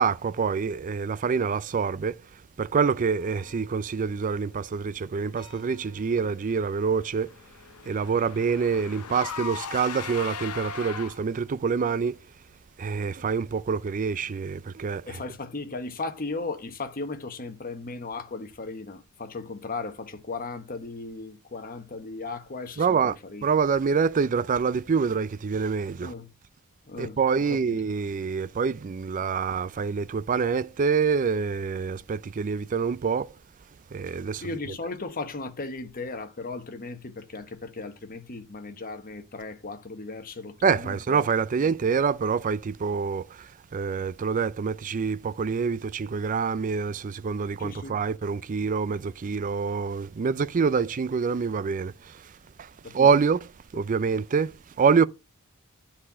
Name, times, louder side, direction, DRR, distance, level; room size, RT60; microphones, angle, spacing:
voice 1, 0.0-2.2 2.6-7.3 7.9-12.2 12.8-15.2 22.8-23.2 23.4-26.1 27.0-33.3 33.9-34.5 40.6-43.3 43.7-51.9 52.9-53.4 53.7-55.1, right 5 dB, 35° right, 0.4 m, -26 dB
sound 1, 3.2-12.4, left 2 dB, 25° left, 5.7 m, -58 dB
Car / Engine, 6.4-11.5, left 7 dB, 80° left, 0.6 m, -38 dB
voice 2, 15.0-23.4 26.0-26.3 26.9-27.8 34.4-41.2 41.7-41.8 47.6-48.0 52.8-53.1, left 3 dB, 40° left, 1.1 m, -36 dB
9.9 x 4.3 x 5.5 m
head